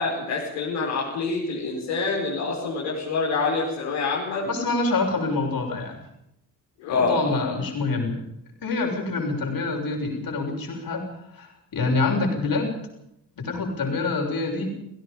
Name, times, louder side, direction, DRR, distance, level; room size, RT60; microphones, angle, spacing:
voice 1, 0.0-4.5 6.8-7.5, left 3 dB, 75° left, -4 dB, 5.1 m, -26 dB
voice 2, 4.4-6.0 6.9-8.2 8.6-11.0 11.3-12.8 13.4-14.8, left 3 dB, 50° left, 2 dB, 6.7 m, -26 dB
29.5 x 16.5 x 5.5 m, 0.78 s
hypercardioid pair, 45°, 44 cm